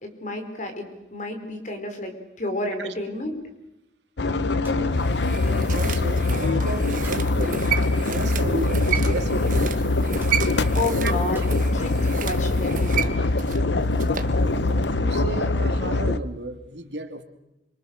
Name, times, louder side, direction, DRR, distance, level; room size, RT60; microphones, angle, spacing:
voice 1, 0.0-3.4 10.7-13.3, left 2 dB, 45° left, 5 dB, 4.7 m, -31 dB
sound 1, 4.2-16.2, left 2 dB, 85° left, 1.0 m, -23 dB
sound 2, 4.6-4.9 5.9-6.2 7.0-7.3 8.9-9.3 9.6-9.7 10.2-10.4 11.3-11.6, right 3 dB, 10° right, 3.5 m, -46 dB
voice 2, 4.6-5.1 5.5-9.7 11.0-11.1 14.6-17.2, right 2 dB, 85° right, 6 dB, 2.6 m, -34 dB
sound 3, 5.0-14.4 14.7-14.8, right 8 dB, 50° right, 1.5 m, -32 dB
26.5 x 25.0 x 6.6 m, 0.92 s
head